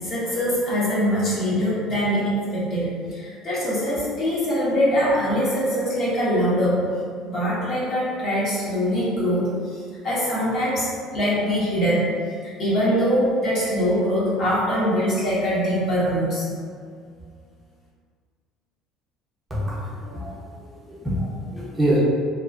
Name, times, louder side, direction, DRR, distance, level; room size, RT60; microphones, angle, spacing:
voice 1, 0.0-6.8 7.2-12.0 12.6-16.5, equal, 50° left, -9 dB, 1.2 m, -23 dB
voice 2, 19.5-20.3 20.6-22.0, right 1 dB, 10° right, -9 dB, 0.8 m, -26 dB
3.0 x 2.1 x 2.5 m, 2.1 s
supercardioid pair, 100°, 0 cm